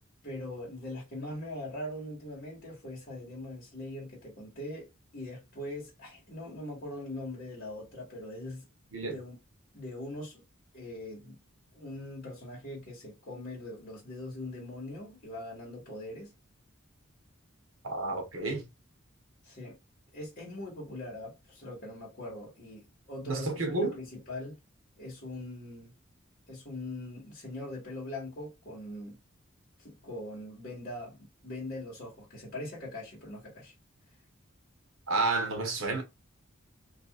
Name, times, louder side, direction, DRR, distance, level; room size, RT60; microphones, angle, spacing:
voice 1, 0.2-8.6 9.0-9.4 9.7-10.4 10.7-11.4 11.7-16.3 19.4-19.8 20.1-24.6 25.0-25.9 26.5-29.2 29.8-33.7, left 1 dB, 45° left, 1.4 m, -41 dB
voice 2, 17.8-18.7 23.3-24.0 35.1-36.0, right 3 dB, 75° right, 1.0 m, -30 dB
2.9 x 2.7 x 2.4 m
head